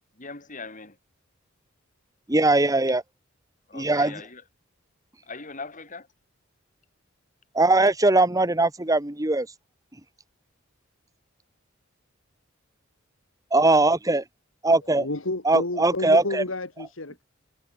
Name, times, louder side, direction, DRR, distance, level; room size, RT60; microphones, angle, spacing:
voice 1, 0.2-0.9 2.5-2.6 3.7-4.4 5.3-6.1, left 4 dB, 40° left, 4.7 m, -40 dB
voice 2, 2.3-3.0 3.7-4.2 7.5-9.5 13.5-14.2 14.6-15.1 15.5-16.4, right 2 dB, 15° right, 1.7 m, -20 dB
voice 3, 15.0-17.2, left 2 dB, 75° left, 2.4 m, -30 dB
head